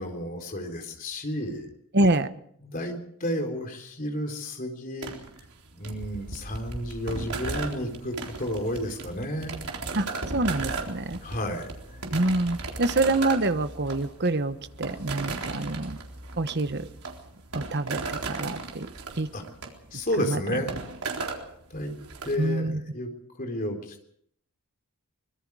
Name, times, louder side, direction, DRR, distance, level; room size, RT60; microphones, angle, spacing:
voice 1, 0.0-1.7 2.6-5.1 5.7-9.6 11.2-11.7 19.3-19.4 19.9-20.7 21.7-21.9 22.2-23.1 23.4-24.1, left 1 dB, 40° left, 4 dB, 4.0 m, -32 dB
voice 2, 1.9-2.3 9.9-10.1 10.3-11.2 12.1-16.0 16.4-16.9 17.5-18.9 19.2-19.3 20.3-20.4 22.4-22.8, right 2 dB, 50° right, 11 dB, 1.1 m, -26 dB
sound 1, 5.0-22.3, right 3 dB, 75° right, 3.9 m, -36 dB
24.5 x 21.5 x 4.9 m, 0.68 s
head